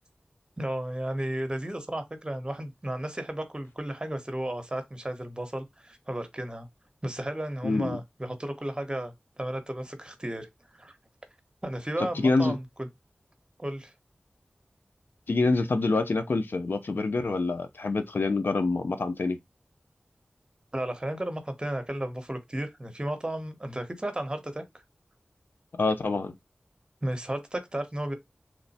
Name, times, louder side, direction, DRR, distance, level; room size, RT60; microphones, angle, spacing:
voice 1, 0.6-6.7 7.0-10.5 10.7-11.0 11.6-12.9 13.6-13.9 20.7-24.6 27.0-28.1, right 1 dB, 25° right, 0.8 m, -33 dB
voice 2, 7.6-8.0 12.0-12.6 15.3-19.4 25.7-26.3, left 3 dB, 90° left, 0.5 m, -26 dB
3.1 x 2.1 x 4.1 m
wide cardioid pair, 50°, 3 cm